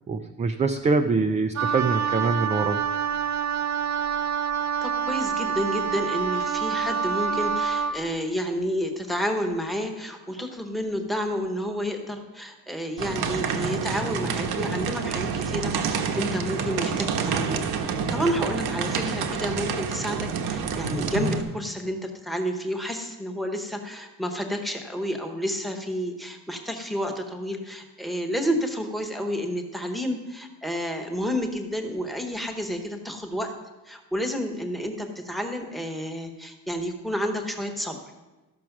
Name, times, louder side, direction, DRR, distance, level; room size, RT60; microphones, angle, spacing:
voice 1, 0.1-2.8, right 4 dB, 20° right, 6 dB, 0.3 m, -24 dB
Wind instrument woodwind instrument, 1.6-8.0, right 6 dB, 50° right, 0.7 m, -27 dB
voice 2, 4.8-33.5 33.8-38.0, equal, ahead, 4 dB, 0.9 m, -30 dB
sound 1, 13.0-21.4, right 6 dB, 85° right, 1.2 m, -28 dB
14.0 x 6.2 x 5.9 m, 1.1 s
cardioid pair, 175°, 36 cm